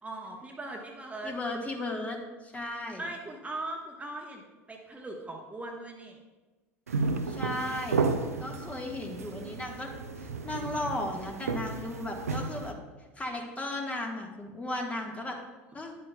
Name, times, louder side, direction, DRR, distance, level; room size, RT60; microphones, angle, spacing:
voice 1, 0.0-1.3 3.0-4.4 4.7-6.2, right 2 dB, 15° right, 0 dB, 1.0 m, -39 dB
voice 2, 1.2-3.1 7.3-8.1 8.4-9.9 10.2-12.8 13.2-15.4 15.7-15.9, left 1 dB, 15° left, 1 dB, 1.3 m, -35 dB
sound 1, 6.9-12.7, right 4 dB, 90° right, 0.5 m, -33 dB
9.8 x 8.3 x 2.2 m, 1.2 s
hypercardioid pair, 75°, 8 cm